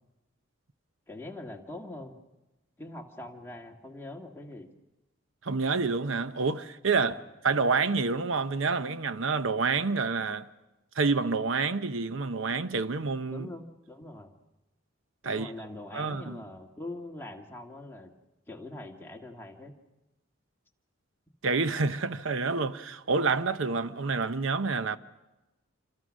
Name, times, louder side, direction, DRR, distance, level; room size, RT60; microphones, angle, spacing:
voice 1, 1.1-2.2 2.8-4.7 7.2-7.3 13.3-14.3 15.2-18.1 18.5-19.8, left 2 dB, 10° left, 1.8 m, -43 dB
voice 2, 5.4-10.5 10.9-13.5 15.2-15.5 15.9-16.4 21.4-25.0, right 4 dB, 70° right, 0.8 m, -28 dB
28.0 x 26.5 x 6.3 m
head